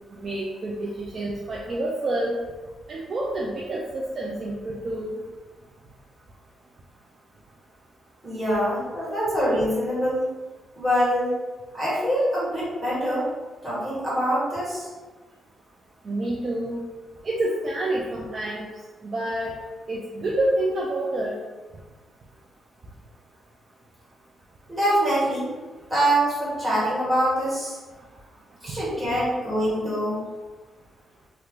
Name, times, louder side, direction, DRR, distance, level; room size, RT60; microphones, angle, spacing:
voice 1, 0.2-2.4 2.9-5.2 16.0-16.8 17.2-18.7 19.0-19.5 19.9-21.3, right 1 dB, 35° right, -3 dB, 0.3 m, -28 dB
voice 2, 8.2-10.3 10.7-11.3 11.7-13.3 13.6-14.9 24.7-25.5 25.9-27.8 28.6-30.2, equal, 10° right, -10 dB, 1.4 m, -24 dB
2.9 x 2.4 x 3.3 m, 1.3 s
wide cardioid pair, 165°, 0 cm